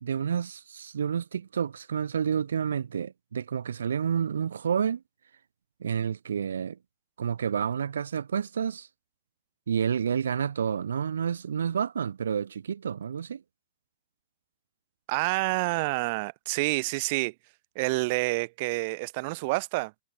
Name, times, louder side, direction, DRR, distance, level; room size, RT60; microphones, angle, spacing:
voice 1, 0.0-5.0 5.8-6.8 7.2-8.9 9.7-13.4, right 7 dB, 80° right, 2.0 m, -29 dB
voice 2, 15.1-17.3 17.7-19.9, right 25 dB, 30° right, 2.9 m, -28 dB
hypercardioid pair, 175°, 0 cm